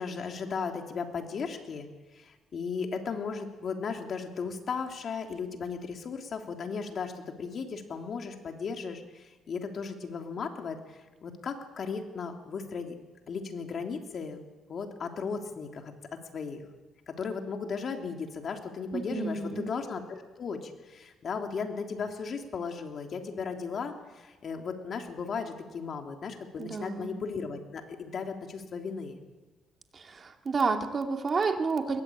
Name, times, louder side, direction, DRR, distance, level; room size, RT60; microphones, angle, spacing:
voice 1, 0.0-1.9 2.1-12.9 13.3-14.4 14.7-15.9 16.3-16.6 17.1-29.2, left 5 dB, 55° left, 4 dB, 3.2 m, -36 dB
voice 2, 18.9-19.7 26.6-27.2 29.9-32.0, right 4 dB, 40° right, 5 dB, 2.5 m, -30 dB
21.5 x 18.5 x 8.7 m, 1.2 s
cardioid pair, 90°, 0 cm